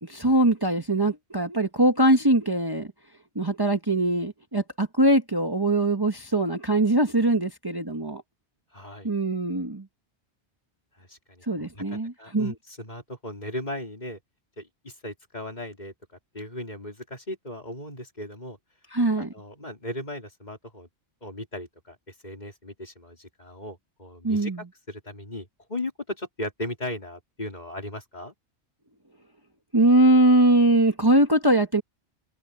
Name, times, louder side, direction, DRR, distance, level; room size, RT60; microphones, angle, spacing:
voice 1, 0.0-2.9 3.3-8.2 9.0-9.8 11.5-12.5 18.9-19.3 24.2-24.6 29.7-31.8, right 1 dB, 20° right, 1.4 m, -22 dB
voice 2, 8.7-9.1 11.0-14.2 14.6-15.9 16.3-18.6 19.2-20.9 21.2-28.3, left 1 dB, 40° left, 4.2 m, -37 dB
omnidirectional pair, 1.1 m